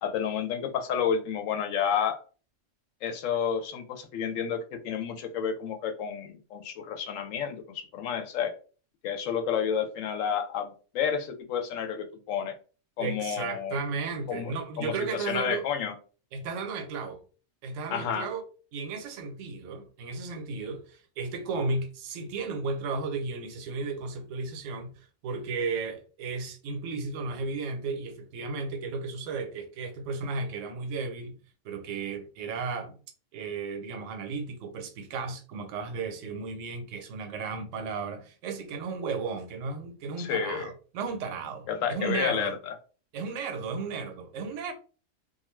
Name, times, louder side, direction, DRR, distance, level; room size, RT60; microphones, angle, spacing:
voice 1, 0.0-2.2 3.0-8.5 9.0-12.5 13.0-13.8 14.3-16.0 17.9-18.3 40.2-40.7 41.7-42.7, left 7 dB, 80° left, 1.0 m, -30 dB
voice 2, 13.0-15.6 16.3-17.2 17.6-18.4 18.7-31.4 31.6-33.0 33.3-42.6 43.1-44.7, right 4 dB, 80° right, 0.9 m, -34 dB
2.5 x 2.3 x 3.1 m
omnidirectional pair, 1.3 m